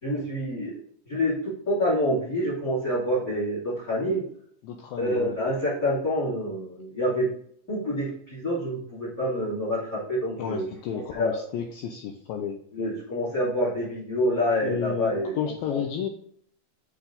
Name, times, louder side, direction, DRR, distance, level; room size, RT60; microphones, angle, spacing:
voice 1, 0.0-0.8 1.1-4.2 5.0-7.3 7.7-10.7 10.9-11.4 12.7-15.8, equal, 25° left, -8 dB, 2.8 m, -27 dB
voice 2, 4.6-5.4 10.4-12.6 14.6-16.1, left 8 dB, 85° left, 4 dB, 2.1 m, -32 dB
6.2 x 5.8 x 3.9 m, 0.63 s
omnidirectional pair, 4.9 m